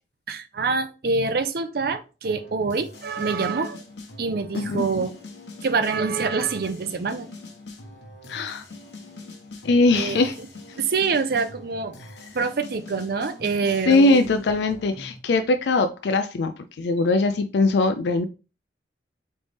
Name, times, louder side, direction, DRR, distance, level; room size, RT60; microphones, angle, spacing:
voice 1, 0.3-3.8 4.2-5.1 5.6-7.3 9.9-10.2 10.7-12.0 12.3-14.2, right 4 dB, 55° right, 10 dB, 0.5 m, -25 dB
sound 1, 2.2-15.2, left 2 dB, 85° left, 1.1 m, -43 dB
voice 2, 8.3-8.6 9.6-10.3 13.9-16.5 16.8-18.2, left 3 dB, 70° left, 8 dB, 0.4 m, -21 dB
4.0 x 3.2 x 3.4 m, 0.32 s
head